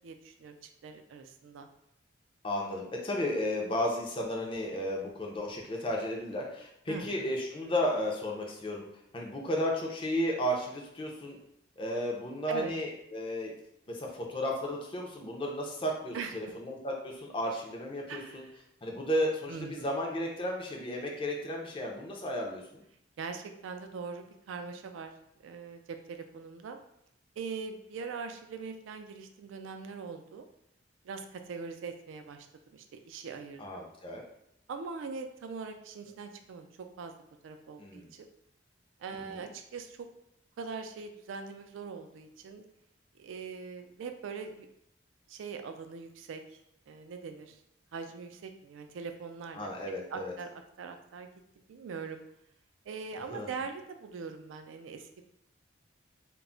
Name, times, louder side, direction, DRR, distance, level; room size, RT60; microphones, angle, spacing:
voice 1, 0.0-1.7 6.9-7.3 12.5-12.7 16.1-16.5 18.1-18.5 19.5-19.9 23.2-25.1 25.4-26.8 27.4-30.4 31.0-32.5 32.7-33.8 34.7-36.7 37.0-37.1 37.4-38.3 39.0-40.1 40.6-42.6 43.2-44.7 45.3-46.6 46.9-47.6 47.9-49.7 50.1-50.5 50.8-51.3 51.7-52.2 52.9-55.1, right 5 dB, 85° right, 6 dB, 0.3 m, -42 dB
voice 2, 2.4-8.8 9.1-11.4 11.8-13.5 13.9-18.4 18.8-22.8 33.6-34.2 37.8-38.1 39.3-39.5 49.6-50.3 53.3-53.5, equal, 25° left, 0 dB, 0.4 m, -33 dB
2.2 x 2.0 x 3.7 m, 0.75 s
head